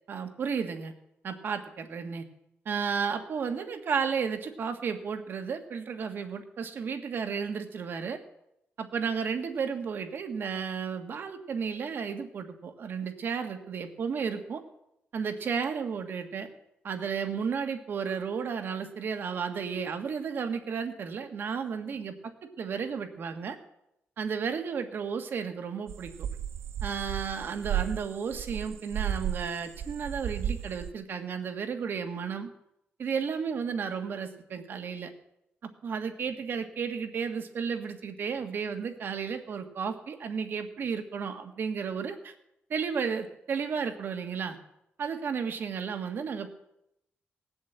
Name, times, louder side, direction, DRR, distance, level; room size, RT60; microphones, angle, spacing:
voice 1, 0.1-0.9 1.2-2.2 2.6-8.2 8.8-14.6 15.1-16.5 16.8-23.6 24.2-26.3 26.8-32.5 33.0-35.1 35.8-42.3 42.7-44.6 45.0-46.6, right 6 dB, 55° right, 7 dB, 1.6 m, -33 dB
sound 1, 25.9-29.5 29.7-30.9, right 10 dB, 80° right, 0.5 m, -33 dB
19.0 x 8.0 x 8.1 m, 0.82 s
wide cardioid pair, 165°, 4 cm